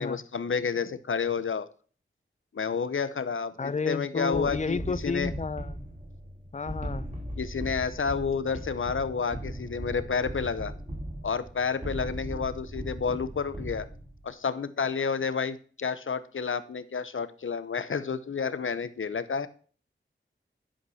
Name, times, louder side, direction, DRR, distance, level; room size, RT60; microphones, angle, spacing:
voice 1, 0.0-1.7 2.5-5.3 7.4-10.7 11.2-13.9 14.2-19.5, left 5 dB, 80° left, 14 dB, 0.8 m, -30 dB
voice 2, 3.6-5.8 6.5-7.1, left 4 dB, 35° left, 19 dB, 0.5 m, -32 dB
sound 1, 4.3-14.3, equal, 35° right, 3.8 m, -38 dB
11.5 x 5.3 x 5.7 m, 0.41 s
wide cardioid pair, 55°, 21 cm